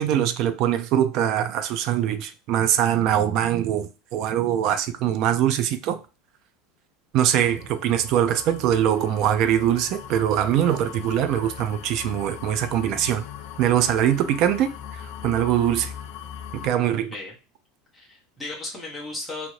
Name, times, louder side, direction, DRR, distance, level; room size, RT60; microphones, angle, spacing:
voice 1, 0.0-6.0 7.1-13.2 13.6-15.9 16.5-17.1, right 10 dB, 40° right, 0.3 m, -22 dB
sound 1, 7.3-16.7, left 9 dB, 55° left, 0.4 m, -39 dB
voice 2, 17.0-17.4 17.9-19.5, left 2 dB, ahead, 0.7 m, -35 dB
2.8 x 2.5 x 3.0 m
supercardioid pair, 175°, 0 cm